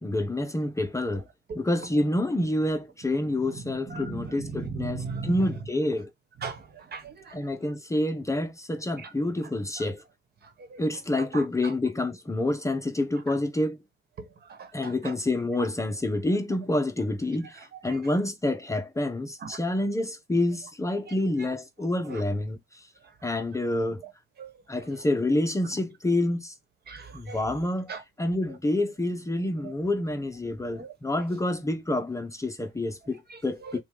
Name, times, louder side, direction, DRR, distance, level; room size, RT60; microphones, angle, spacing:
voice 1, 0.0-1.2 1.5-6.1 7.3-10.0 10.8-13.8 14.7-22.8 23.2-24.0 24.7-26.5 27.1-27.9 28.2-33.8, left 1 dB, 15° left, 0.6 m, -28 dB
voice 2, 3.5-5.5 6.4-7.5 9.0-9.1 9.8-9.9 10.4-10.8 11.3-11.7 14.2-15.1 17.5-18.2 19.4-19.8 21.1-21.2 21.4-21.5 22.0-22.2 23.0-23.1 24.0-24.1 24.4-24.5 26.9-27.4 27.9-28.0 29.6-29.7 30.7-30.9 33.3-33.7, right 5 dB, 55° right, 1.2 m, -39 dB
5.8 x 2.3 x 3.7 m
cardioid pair, 90°, 20 cm